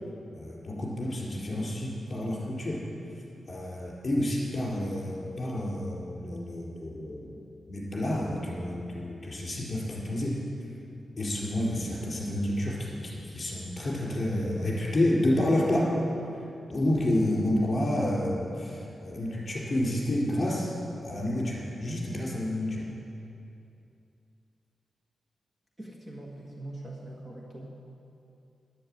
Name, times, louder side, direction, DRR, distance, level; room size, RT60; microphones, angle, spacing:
voice 1, 0.4-2.8 3.5-7.4 7.7-10.4 11.2-15.9 16.7-20.7 21.0-22.8, left 1 dB, 30° left, -5 dB, 4.2 m, -29 dB
voice 2, 25.8-27.7, right 1 dB, 20° right, -3 dB, 1.6 m, -42 dB
12.0 x 11.0 x 8.8 m, 2.7 s
wide cardioid pair, 165°, 0 cm